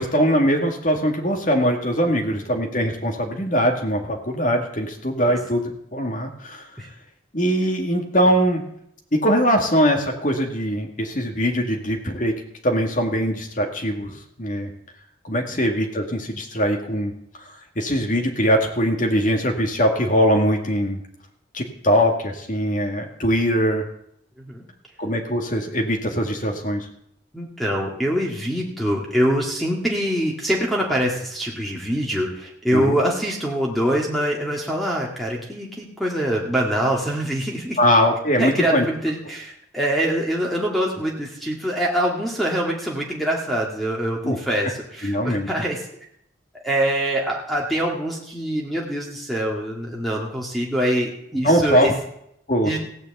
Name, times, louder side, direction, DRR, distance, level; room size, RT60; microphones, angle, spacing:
voice 1, 0.0-6.7 7.3-8.6 9.1-12.3 12.6-14.7 15.2-17.1 17.8-21.0 21.5-23.8 25.0-26.9 32.7-33.0 37.8-38.9 44.2-44.4 45.0-45.5 51.4-51.9 52.5-52.7, equal, 45° left, 2 dB, 2.1 m, -21 dB
voice 2, 27.3-37.8 38.4-45.8 46.6-51.9 52.6-52.8, right 1 dB, ahead, -2 dB, 1.9 m, -24 dB
16.0 x 6.7 x 8.1 m, 0.73 s
head